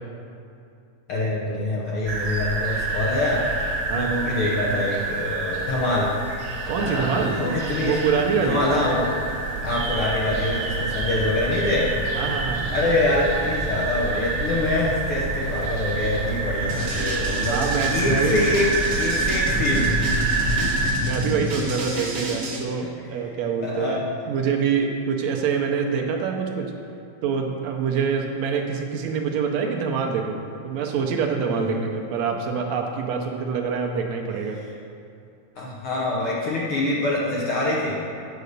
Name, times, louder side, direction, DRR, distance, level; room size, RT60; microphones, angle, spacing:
voice 1, 1.1-3.4 3.9-6.1 6.8-7.9 8.4-9.2 9.6-12.1 12.7-20.3 21.9-22.0 22.8-22.9 23.6-24.0 31.5-31.6 35.6-38.0, left 2 dB, 65° left, -5 dB, 1.4 m, -25 dB
sound 1, 2.1-20.9, right 3 dB, 90° right, 0.8 m, -27 dB
voice 2, 6.7-7.4 7.8-8.6 12.1-12.7 17.5-18.4 20.6-26.7 27.2-34.6, right 6 dB, 75° right, 2 dB, 1.8 m, -25 dB
sound 2, 16.7-22.6, equal, 55° right, 1.6 m, -29 dB
9.3 x 4.8 x 6.6 m, 2.6 s
omnidirectional pair, 3.5 m